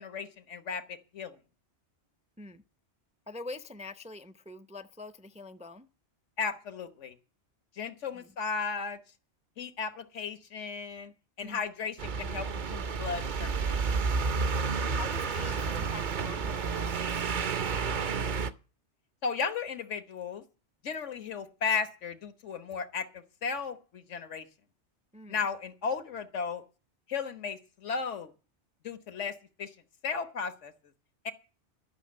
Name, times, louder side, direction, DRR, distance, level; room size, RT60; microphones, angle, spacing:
voice 1, 0.0-1.4 6.4-7.1 7.8-9.0 9.6-11.1 11.4-13.8 17.7-18.1 19.2-20.4 20.8-24.5 25.3-26.6 27.1-28.3 28.8-29.7 30.0-30.7 31.2-31.3, left 5 dB, 90° left, 1.5 m, -35 dB
voice 2, 3.3-5.9 8.1-8.4 11.4-11.6 14.9-17.3 25.1-25.5, left 2 dB, 10° right, 0.4 m, -45 dB
sound 1, 12.0-18.5, right 5 dB, 50° right, 0.8 m, -30 dB
12.0 x 6.1 x 8.6 m
omnidirectional pair, 1.2 m